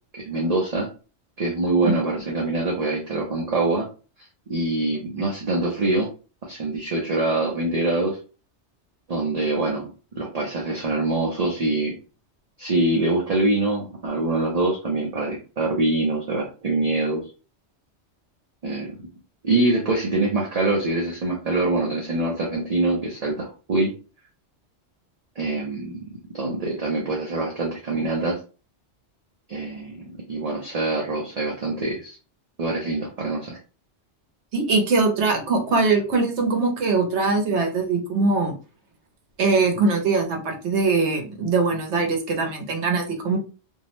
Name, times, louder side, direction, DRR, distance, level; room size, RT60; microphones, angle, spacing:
voice 1, 0.1-0.9 1.4-3.9 4.5-6.1 6.4-8.2 9.1-9.9 10.2-11.9 12.6-17.2 18.6-19.0 19.4-23.9 25.4-26.0 26.3-28.4 29.5-32.2 32.6-33.6, right 2 dB, 45° right, -1 dB, 0.5 m, -24 dB
voice 2, 34.5-38.6 39.4-43.4, right 3 dB, 75° right, 4 dB, 1.0 m, -22 dB
2.6 x 2.0 x 2.9 m, 0.34 s
omnidirectional pair, 1.2 m